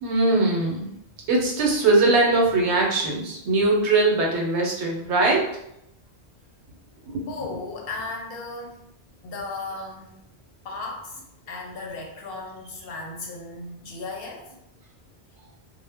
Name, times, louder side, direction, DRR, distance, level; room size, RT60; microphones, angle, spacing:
voice 1, 0.0-0.9 1.3-5.4 7.1-7.3, right 2 dB, 80° right, -1 dB, 0.9 m, -21 dB
voice 2, 7.3-8.8 9.2-10.1 10.6-11.2 11.5-14.5, left 3 dB, 65° left, 0 dB, 0.7 m, -35 dB
2.1 x 2.0 x 3.3 m, 0.81 s
omnidirectional pair, 1.1 m